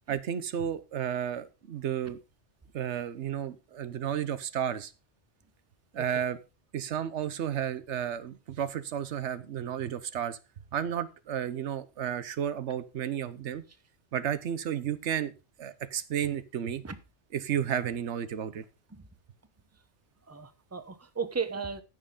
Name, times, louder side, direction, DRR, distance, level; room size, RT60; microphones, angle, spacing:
voice 1, 0.1-2.2 2.7-4.9 5.9-6.4 6.7-10.4 10.7-13.6 14.1-15.3 15.6-16.8 17.3-18.6, right 9 dB, 85° right, 14 dB, 1.1 m, -32 dB
voice 2, 20.3-21.8, right 5 dB, 15° right, 11 dB, 0.9 m, -35 dB
15.0 x 6.4 x 3.7 m, 0.30 s
omnidirectional pair, 1.1 m